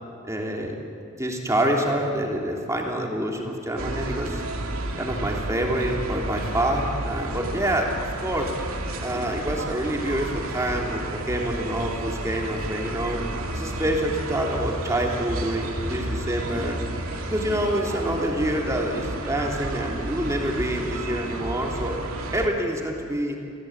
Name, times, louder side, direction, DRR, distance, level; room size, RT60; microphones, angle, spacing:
voice 1, 0.3-0.8 1.2-4.4 5.0-7.9 8.2-8.5 9.0-13.2 13.5-16.8 17.3-22.0 22.3-23.4, right 1 dB, 15° right, 0 dB, 3.0 m, -27 dB
sound 1, 3.8-22.5, right 1 dB, 75° right, 2.5 m, -31 dB
27.0 x 16.5 x 8.8 m, 2.5 s
head